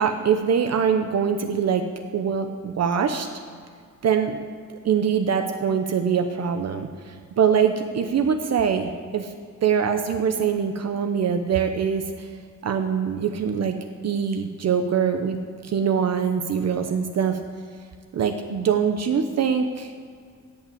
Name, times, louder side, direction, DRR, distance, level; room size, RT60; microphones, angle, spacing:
voice 1, 0.0-3.3 4.0-4.4 4.8-9.3 9.6-12.3 12.6-13.7 14.0-15.4 15.6-17.4 18.1-19.9, right 7 dB, 55° right, 6 dB, 0.8 m, -23 dB
16.5 x 5.9 x 8.5 m, 2.1 s
wide cardioid pair, 155°, 32 cm